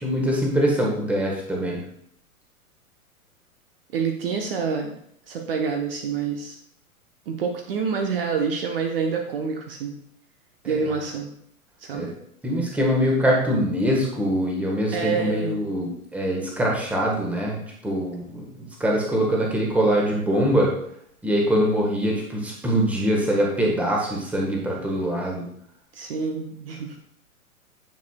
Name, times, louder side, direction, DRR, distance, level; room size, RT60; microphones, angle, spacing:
voice 1, 0.0-1.8 10.6-10.8 11.9-12.1 12.4-18.5 18.8-20.7 21.2-25.4, equal, 5° right, -2 dB, 1.2 m, -23 dB
voice 2, 3.9-5.0 5.3-6.6 7.3-9.9 10.7-11.3 11.8-12.1 14.9-15.8 25.9-27.0, right 5 dB, 40° right, 3 dB, 0.8 m, -27 dB
9.3 x 6.6 x 2.2 m, 0.70 s
figure-of-eight pair, 110°, 43 cm